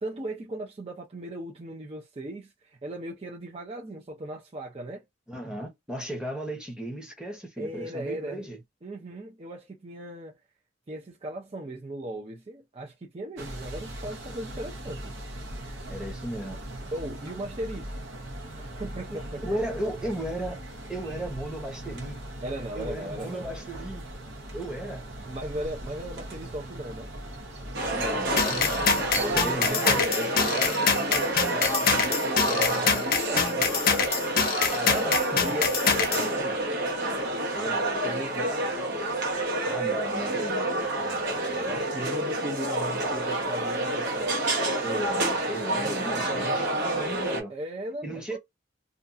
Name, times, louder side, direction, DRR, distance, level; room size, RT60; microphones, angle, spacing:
voice 1, 0.0-5.0 7.6-8.4 8.8-10.3 10.9-15.1 16.9-17.9 18.6-19.4 22.4-23.5 25.2-27.1 29.1-33.8 35.4-36.6 37.5-38.6 41.0-44.5 45.6-46.5 47.5-48.4, right 1 dB, 30° right, 0.6 m, -38 dB
voice 2, 5.3-8.6 15.9-16.6 19.1-22.2 22.7-24.0 24.5-25.0 27.9-30.8 32.4-33.1 34.7-35.5 35.8-36.2 39.6-40.9 44.8-47.5 48.0-48.4, right 1 dB, 5° right, 0.8 m, -35 dB
sound 1, 13.4-29.7, right 1 dB, 80° right, 0.8 m, -40 dB
sound 2, 27.7-47.4, right 1 dB, 65° right, 1.2 m, -28 dB
sound 3, 28.4-36.3, left 6 dB, 55° left, 0.7 m, -25 dB
2.5 x 2.3 x 2.5 m
head